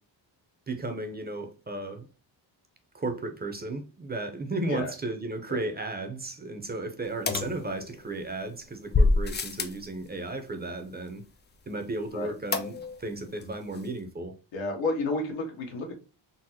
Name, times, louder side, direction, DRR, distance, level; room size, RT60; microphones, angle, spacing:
voice 1, 0.7-2.1 2.9-11.2 11.7-14.4, right 2 dB, 20° right, 0.6 m, -34 dB
sound 1, 7.3-8.2 8.9-9.9 12.5-13.1 13.4-13.5 13.7-13.8, left 3 dB, 25° left, 0.3 m, -26 dB
voice 2, 14.5-15.9, left 2 dB, 80° left, 1.2 m, -31 dB
4.0 x 2.1 x 2.7 m
cardioid pair, 85°, 44 cm